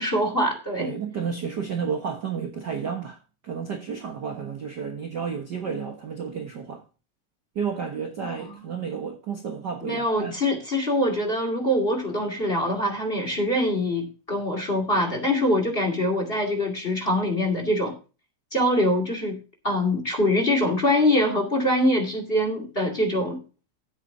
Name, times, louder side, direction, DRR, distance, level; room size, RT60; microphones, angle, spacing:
voice 1, 0.0-0.9 8.5-8.6 9.8-17.9 18.5-19.4 19.6-23.4, left 1 dB, 20° left, 2.0 m, -24 dB
voice 2, 0.8-6.8 7.5-10.3, right 6 dB, 60° right, 1.1 m, -31 dB
14.5 x 8.3 x 2.7 m
omnidirectional pair, 3.8 m